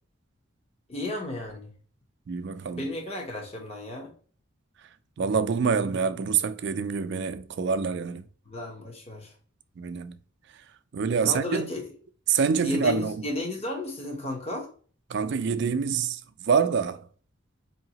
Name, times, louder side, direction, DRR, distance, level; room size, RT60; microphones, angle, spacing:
voice 1, 0.9-1.7 2.8-4.1 8.5-9.3 11.2-11.9 12.6-14.7, left 2 dB, 30° left, 0.9 m, -33 dB
voice 2, 2.3-2.9 5.2-8.2 9.8-10.2 10.9-11.7 12.3-13.2 15.1-16.2 16.5-17.1, right 6 dB, 55° right, 0.4 m, -26 dB
4.6 x 2.8 x 2.8 m
head